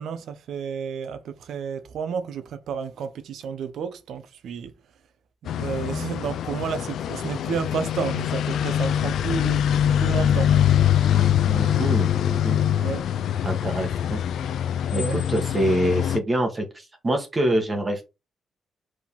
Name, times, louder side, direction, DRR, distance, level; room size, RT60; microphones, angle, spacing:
voice 1, 0.0-4.7 5.5-9.6 10.0-10.5 12.8-13.0 14.9-15.2, right 6 dB, 70° right, 0.9 m, -31 dB
sound 1, 5.5-16.2, left 10 dB, 70° left, 0.5 m, -23 dB
voice 2, 11.5-12.6 13.4-14.2 14.9-18.0, right 1 dB, 20° right, 1.4 m, -26 dB
5.0 x 3.8 x 5.3 m
wide cardioid pair, 165°, 0 cm